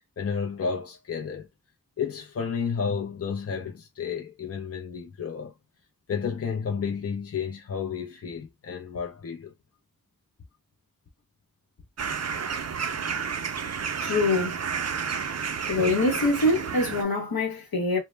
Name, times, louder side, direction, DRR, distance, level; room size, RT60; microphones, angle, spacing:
voice 1, 0.2-1.5 2.0-5.5 6.1-9.5, left 6 dB, 45° left, 0.5 m, -31 dB
sound 1, 12.0-17.0, right 6 dB, 50° right, 0.4 m, -31 dB
voice 2, 14.0-14.5 15.7-18.0, left 2 dB, 80° left, 1.0 m, -24 dB
2.1 x 2.1 x 3.1 m
wide cardioid pair, 55°, 35 cm